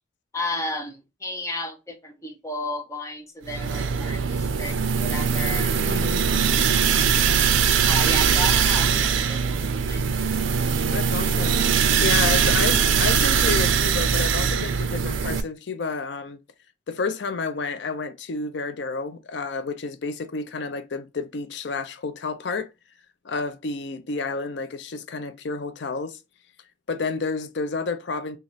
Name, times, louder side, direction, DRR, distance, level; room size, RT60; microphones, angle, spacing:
voice 1, 0.3-6.2 7.4-7.5 7.8-10.1, left 1 dB, 15° left, 0.7 m, -33 dB
Grinding Fan Noise, 3.5-15.4, right 6 dB, 75° right, 0.4 m, -21 dB
voice 2, 5.9-6.2 10.9-11.6 12.0-16.4 16.9-22.7 23.2-26.2 26.9-28.4, left 4 dB, 60° left, 0.5 m, -30 dB
3.0 x 2.4 x 4.0 m
head